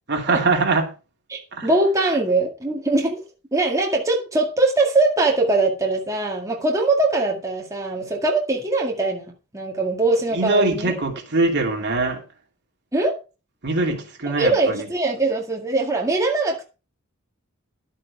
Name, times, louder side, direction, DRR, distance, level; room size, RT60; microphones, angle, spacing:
voice 1, 0.1-0.9 1.5-1.7 10.3-12.2 13.6-14.8, right 3 dB, 55° right, 2.8 m, -22 dB
voice 2, 1.3-3.2 3.5-10.9 12.9-13.2 14.4-16.6, right 2 dB, 15° right, 2.1 m, -22 dB
11.5 x 8.5 x 4.7 m
head